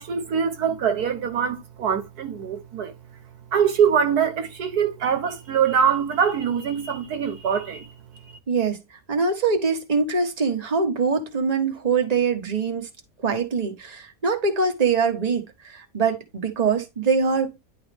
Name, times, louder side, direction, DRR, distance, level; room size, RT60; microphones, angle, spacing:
voice 1, 0.0-2.9 3.5-7.9, right 7 dB, 75° right, 1.6 m, -23 dB
voice 2, 8.5-12.9 13.2-17.6, right 5 dB, 25° right, 1.5 m, -23 dB
10.5 x 4.2 x 3.5 m
omnidirectional pair, 1.7 m